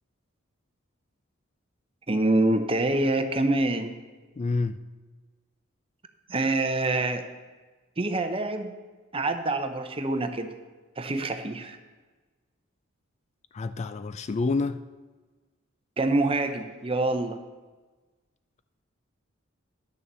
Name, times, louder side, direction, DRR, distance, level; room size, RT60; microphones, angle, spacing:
voice 1, 2.1-3.9 6.3-7.2 8.0-8.7 9.1-10.5 11.0-11.8 16.0-17.4, right 2 dB, 25° right, 7 dB, 0.8 m, -26 dB
voice 2, 4.4-4.8 13.5-14.8, left 3 dB, 35° left, 12 dB, 0.3 m, -28 dB
10.5 x 7.0 x 6.8 m, 1.3 s
head